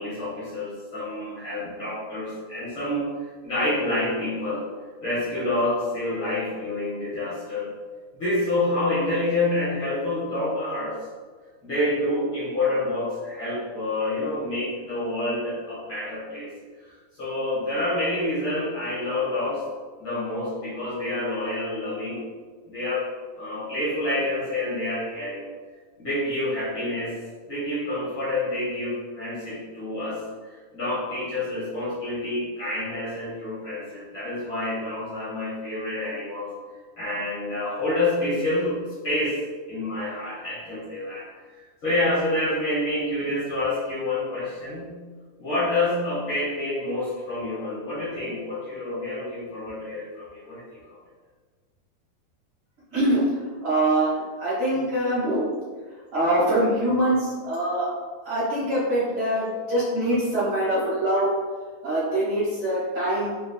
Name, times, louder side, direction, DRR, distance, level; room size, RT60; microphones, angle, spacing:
voice 1, 0.0-3.1 3.4-4.6 5.0-7.7 8.1-11.0 11.6-16.5 17.2-19.6 20.0-22.2 22.6-23.1 23.4-25.5 26.0-27.2 27.5-36.5 37.0-39.4 39.7-45.0 45.4-50.9, left 2 dB, 70° left, -9 dB, 1.2 m, -28 dB
voice 2, 52.9-53.4 53.6-55.5 56.1-57.9 58.2-61.3 61.8-63.3, right 1 dB, 55° right, -10 dB, 1.8 m, -24 dB
5.0 x 2.8 x 2.2 m, 1.5 s
omnidirectional pair, 3.6 m